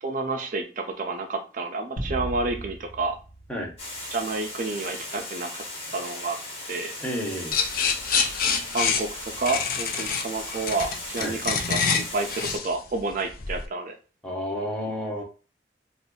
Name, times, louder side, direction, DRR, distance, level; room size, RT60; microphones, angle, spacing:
voice 1, 0.0-3.2 4.0-5.6 5.9-6.4 6.7-6.9 8.2-8.3 8.7-13.9, right 3 dB, 50° right, 4 dB, 0.4 m, -30 dB
sound 1, 2.0-4.6, right 1 dB, 75° left, 1.0 m, -37 dB
Water, 3.8-12.6, left 2 dB, 35° left, 1.2 m, -37 dB
voice 2, 7.0-7.6 11.2-11.4 14.2-15.2, equal, 5° left, -2 dB, 0.8 m, -31 dB
sound 2, 7.5-13.7, left 6 dB, 55° left, 0.5 m, -26 dB
2.5 x 2.4 x 3.6 m, 0.34 s
head